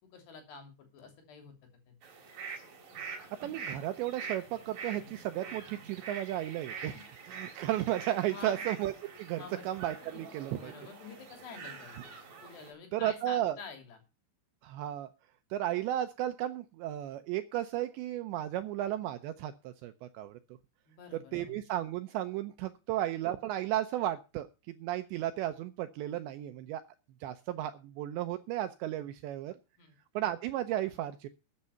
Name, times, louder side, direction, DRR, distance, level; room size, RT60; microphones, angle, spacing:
voice 1, 0.0-1.6 1.9-2.0 6.9-7.0 8.3-8.6 9.4-9.7 10.1-10.2 10.6-12.1 12.4-14.0 20.9-21.6 29.8-30.0, left 5 dB, 60° left, 4 dB, 4.8 m, -48 dB
sound 1, 2.0-12.7, right 5 dB, 45° right, 4.5 m, -45 dB
voice 2, 3.4-7.0 7.3-8.9 9.2-10.7 12.9-13.6 14.6-15.1 15.5-20.4 21.3-24.5 24.8-26.8 27.2-29.5 30.2-31.3, right 13 dB, 80° right, 9 dB, 2.7 m, -34 dB
13.5 x 8.6 x 5.7 m, 0.30 s
omnidirectional pair, 5.8 m